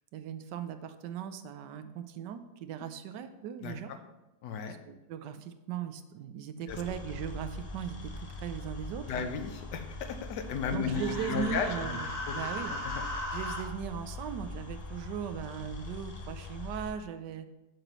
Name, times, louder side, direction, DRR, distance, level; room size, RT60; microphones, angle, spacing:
voice 1, 0.1-3.9 4.7-9.3 10.7-12.7 13.3-17.5, right 9 dB, 90° right, 9 dB, 1.3 m, -38 dB
voice 2, 3.6-4.0 4.4-4.8 6.7-6.8 9.1-12.0 12.3-12.4 12.7-12.8, left 6 dB, 85° left, 7 dB, 1.4 m, -34 dB
sound 1, 6.7-16.9, left 3 dB, 55° left, 0.4 m, -43 dB
Human voice, 10.8-13.6, left 1 dB, 35° left, 1.4 m, -37 dB
7.8 x 7.5 x 3.1 m, 1.0 s
omnidirectional pair, 1.8 m